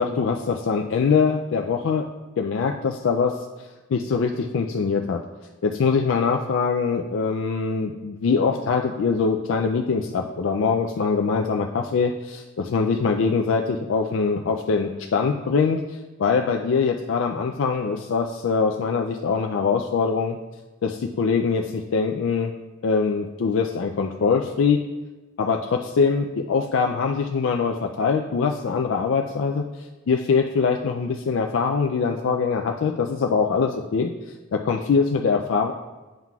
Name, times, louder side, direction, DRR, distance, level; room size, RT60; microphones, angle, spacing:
voice 1, 0.0-2.1 2.4-5.2 5.6-20.4 20.8-22.5 22.8-24.8 25.4-34.1 34.5-35.7, left 5 dB, 80° left, 2 dB, 0.4 m, -23 dB
8.8 x 5.7 x 2.3 m, 1.2 s
head